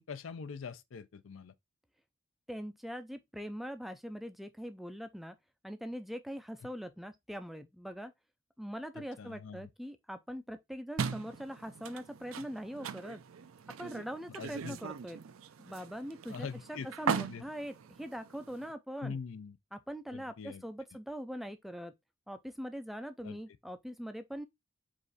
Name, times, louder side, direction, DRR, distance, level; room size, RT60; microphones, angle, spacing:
voice 1, 0.0-1.5 9.0-9.7 14.4-14.8 16.3-17.4 19.0-19.6 20.1-20.6 23.2-23.4, left 5 dB, 65° left, 0.5 m, -43 dB
voice 2, 2.5-5.4 5.6-8.1 8.6-13.2 13.8-15.2 15.6-19.2 19.7-21.9 22.3-24.5, equal, ahead, 0.4 m, -42 dB
sound 1, 11.0-18.7, right 6 dB, 80° right, 0.5 m, -40 dB
4.9 x 2.5 x 4.0 m
head